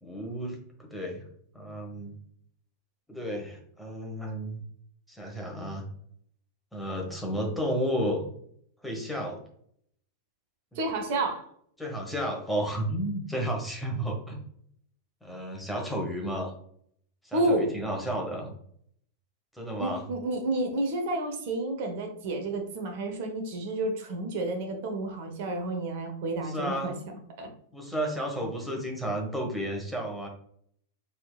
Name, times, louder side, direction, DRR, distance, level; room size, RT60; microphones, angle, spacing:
voice 1, 0.0-1.2 1.5-2.2 3.1-4.6 5.1-5.9 6.7-8.3 8.8-9.4 11.8-14.4 15.2-16.5 17.2-18.6 19.5-20.0 26.4-27.0 27.7-30.3, equal, ahead, 0 dB, 1.2 m, -32 dB
voice 2, 10.8-11.4 17.3-17.7 19.8-26.9 27.4-27.5, right 2 dB, 50° right, 4 dB, 1.0 m, -30 dB
4.3 x 3.8 x 2.4 m, 0.65 s
figure-of-eight pair, 90°, 0 cm